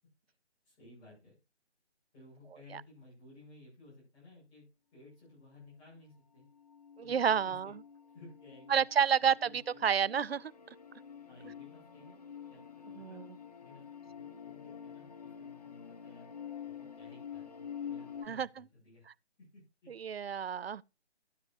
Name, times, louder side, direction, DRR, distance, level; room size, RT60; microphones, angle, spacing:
voice 1, 0.6-1.4 2.1-4.6 4.9-6.5 7.0-7.1 7.4-7.7 8.1-8.8 9.2-9.6 11.3-12.2 12.5-13.2 13.6-16.3 16.6-19.1 19.4-19.9, left 2 dB, 15° left, 5.9 m, -57 dB
sound 1, 6.4-18.3, left 8 dB, 35° left, 0.6 m, -48 dB
voice 2, 7.0-7.7 8.7-9.5 9.8-10.5 13.0-13.3 18.2-18.5 19.9-20.8, right 7 dB, 60° right, 0.4 m, -29 dB
12.5 x 8.3 x 2.7 m
figure-of-eight pair, 150°, 34 cm